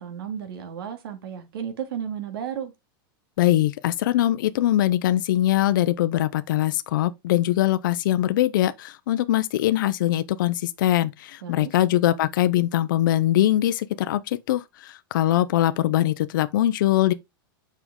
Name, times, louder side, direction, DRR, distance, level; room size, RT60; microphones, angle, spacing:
voice 1, 0.0-2.7 11.4-11.7, right 8 dB, 80° right, 2.7 m, -33 dB
voice 2, 3.4-17.1, left 13 dB, 60° left, 0.6 m, -22 dB
7.1 x 5.7 x 3.7 m
supercardioid pair, 175°, 12 cm